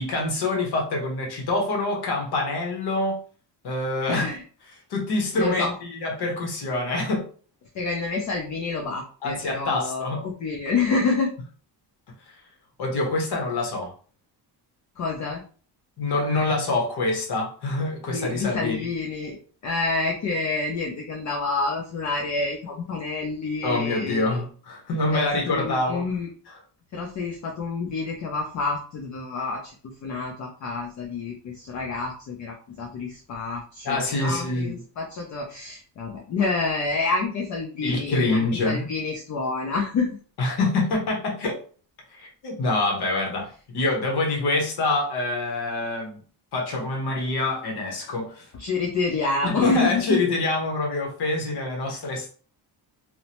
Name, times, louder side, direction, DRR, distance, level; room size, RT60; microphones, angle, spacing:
voice 1, 0.0-3.2 3.6-4.3 4.9-7.3 9.2-10.2 12.8-13.9 16.0-18.9 23.6-26.0 26.5-26.6 33.8-34.8 37.8-38.9 40.4-41.6 42.2-43.5 43.7-46.2 46.5-48.5 49.4-52.3, left 2 dB, 60° left, 1.0 m, -26 dB
voice 2, 4.1-4.4 5.3-5.7 7.7-11.3 15.0-15.4 18.1-19.4 19.6-24.4 25.1-26.3 26.9-40.2 48.6-50.2, left 3 dB, 45° left, 0.4 m, -28 dB
2.8 x 2.0 x 2.9 m
cardioid pair, 165°, 43 cm